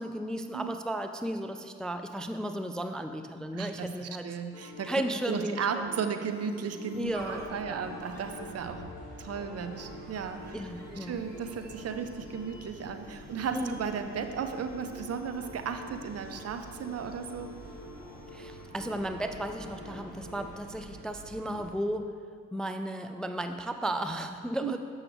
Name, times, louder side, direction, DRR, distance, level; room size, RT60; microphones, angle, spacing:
voice 1, 0.0-4.3 4.8-5.8 7.0-7.9 10.5-11.2 13.5-13.8 18.3-22.2 22.5-24.8, right 1 dB, ahead, 7 dB, 0.3 m, -34 dB
voice 2, 3.5-4.9 5.3-8.8 9.2-10.6 11.1-17.5 24.6-24.7, right 6 dB, 55° right, 8 dB, 0.6 m, -35 dB
sound 1, 4.5-20.5, left 3 dB, 50° left, 1.0 m, -48 dB
sound 2, 6.3-18.7, right 1 dB, 35° right, 1.3 m, -52 dB
sound 3, 7.0-21.7, right 2 dB, 85° right, 1.7 m, -49 dB
7.7 x 6.2 x 3.1 m, 2.2 s
supercardioid pair, 50°, 30 cm